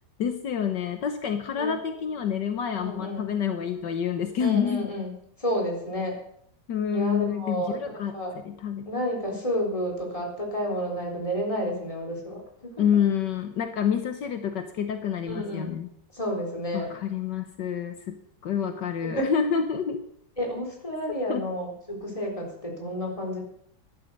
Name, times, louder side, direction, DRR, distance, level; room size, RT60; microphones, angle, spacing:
voice 1, 0.2-4.9 6.7-8.1 8.4-8.9 12.8-15.9 16.7-18.2 18.4-20.0 21.3-21.4, left 8 dB, 75° left, 7 dB, 1.7 m, -28 dB
voice 2, 1.5-2.0 2.8-3.3 4.4-5.1 5.4-6.2 6.9-8.3 8.9-12.7 15.3-15.7 16.1-16.9 19.0-19.2 20.4-23.4, equal, 20° left, 0 dB, 4.1 m, -31 dB
14.5 x 11.0 x 6.6 m, 0.69 s
omnidirectional pair, 1.9 m